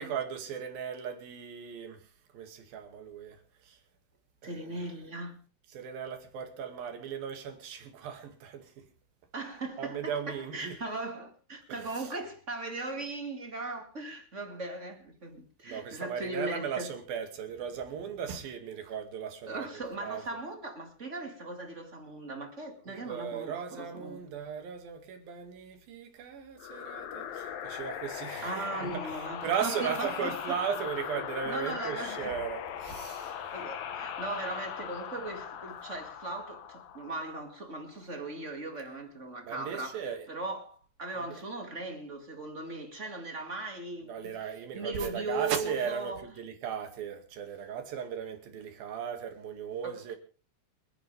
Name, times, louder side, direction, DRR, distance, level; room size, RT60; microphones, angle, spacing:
voice 1, 0.0-2.0 2.3-3.8 4.4-4.7 5.7-8.8 9.8-10.8 11.7-12.1 15.6-19.7 20.0-20.2 22.9-33.4 39.4-40.3 41.3-41.4 44.1-50.2, right 7 dB, 70° right, 3.9 m, -37 dB
voice 2, 4.4-5.4 9.3-16.9 19.5-24.2 28.4-30.6 31.5-32.3 33.2-44.3 44.7-46.2 49.8-50.1, right 2 dB, 25° right, 1.8 m, -38 dB
sound 1, 26.6-37.9, left 9 dB, 70° left, 3.0 m, -39 dB
28.0 x 10.0 x 3.4 m
omnidirectional pair, 4.4 m